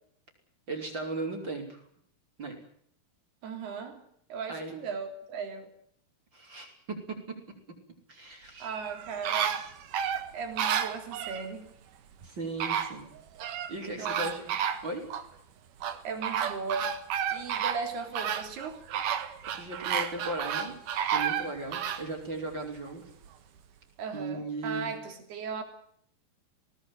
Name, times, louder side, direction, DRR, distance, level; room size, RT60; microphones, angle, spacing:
voice 1, 0.7-1.8 2.4-2.6 4.5-4.7 6.3-7.4 8.1-8.7 12.2-13.1 13.7-14.5 14.8-15.1 19.5-20.7 21.0-23.0 24.1-24.9, right 2 dB, 30° right, 2 dB, 5.8 m, -37 dB
voice 2, 3.4-4.0 4.3-5.7 8.6-9.6 10.3-11.7 14.0-14.3 16.0-17.0 17.3-18.8 24.0-25.6, right 5 dB, 75° right, 5 dB, 5.4 m, -37 dB
sound 1, 8.6-11.5 12.2-12.3 12.6-13.7 14.1-15.3 15.8-22.1 22.5-22.6, right 8 dB, 60° right, 2.9 m, -31 dB
20.0 x 19.0 x 9.4 m, 0.67 s
omnidirectional pair, 4.6 m